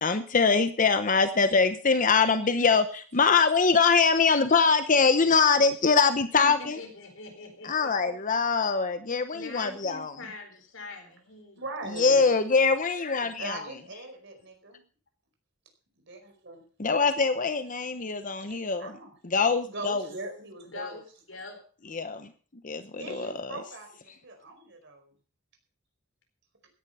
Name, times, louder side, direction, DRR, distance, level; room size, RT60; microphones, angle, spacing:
voice 1, 0.0-6.8 7.6-10.1 12.0-13.6 16.8-18.9 19.3-20.0 21.9-22.3 22.6-23.5, left 5 dB, 40° left, 10 dB, 0.9 m, -23 dB
voice 2, 6.4-8.1 9.3-11.6 12.1-12.3 20.7-21.0 21.3-21.6, left 3 dB, 70° left, 4 dB, 4.4 m, -43 dB
voice 3, 11.5-12.2 13.4-14.8 16.0-16.6 18.4-19.2 19.6-21.0 23.0-25.1, right 2 dB, 60° right, 4 dB, 4.9 m, -41 dB
16.5 x 10.5 x 5.5 m, 0.41 s
head